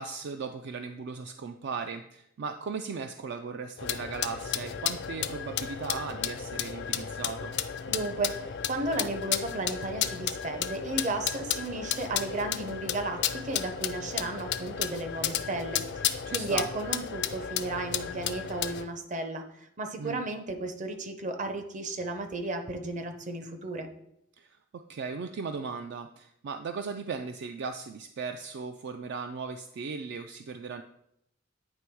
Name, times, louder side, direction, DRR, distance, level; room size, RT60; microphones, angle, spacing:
voice 1, 0.0-7.5 16.3-16.6 20.0-20.2 24.4-30.8, right 5 dB, 60° right, 7 dB, 0.4 m, -37 dB
sound 1, 3.8-18.9, left 9 dB, 60° left, 0.4 m, -33 dB
voice 2, 7.9-23.9, right 2 dB, 40° right, 6 dB, 0.7 m, -34 dB
9.1 x 3.4 x 4.6 m, 0.77 s
head